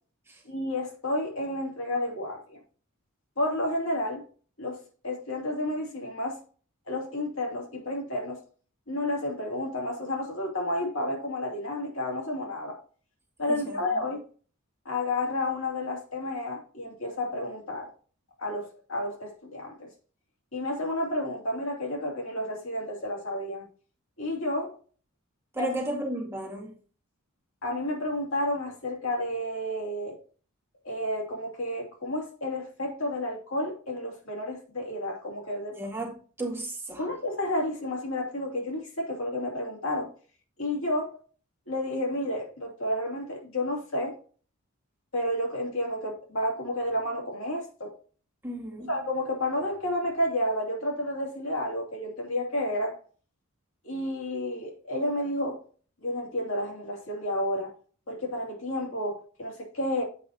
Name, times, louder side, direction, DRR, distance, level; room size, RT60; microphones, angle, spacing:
voice 1, 0.4-2.6 3.4-4.2 4.6-6.4 6.9-8.4 8.9-12.8 13.4-14.2 14.8-17.9 18.4-19.9 20.5-23.7 24.2-24.8 25.6-25.7 27.6-30.2 30.8-35.8 37.0-40.1 40.6-41.2 41.7-44.2 45.1-47.9 48.9-53.0 53.8-55.6 56.0-57.7 58.1-60.0, left 1 dB, 65° left, 2.6 m, -31 dB
voice 2, 13.5-13.8 25.5-26.7 35.7-37.1 48.4-48.9, right 1 dB, 10° right, 2.0 m, -34 dB
8.1 x 5.6 x 2.7 m
head